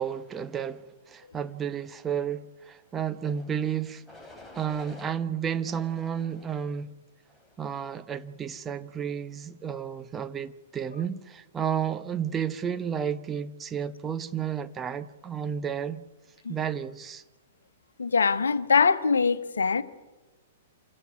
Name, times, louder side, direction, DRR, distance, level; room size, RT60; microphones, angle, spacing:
voice 1, 0.0-4.0 4.5-6.9 7.6-16.0 16.5-17.2, right 8 dB, 15° right, 0.9 m, -32 dB
sound 1, 3.1-3.5 4.1-5.1 5.7-6.7 7.3-7.7, left 2 dB, ahead, 3.3 m, -50 dB
voice 2, 18.0-19.8, left 5 dB, 70° left, 1.2 m, -23 dB
26.5 x 16.5 x 9.5 m
figure-of-eight pair, 105°, 0 cm